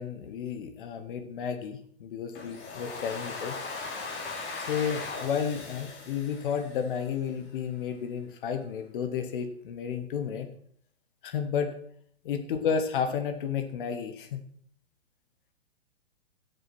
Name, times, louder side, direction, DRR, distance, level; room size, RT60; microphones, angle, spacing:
voice 1, 0.0-3.6 4.6-10.5 11.2-11.7 12.2-14.4, left 7 dB, 50° left, 8 dB, 1.5 m, -32 dB
Domestic sounds home sounds, 2.3-7.3, left 3 dB, 30° left, 3.2 m, -39 dB
12.5 x 7.0 x 6.1 m, 0.63 s
figure-of-eight pair, 115°, 33 cm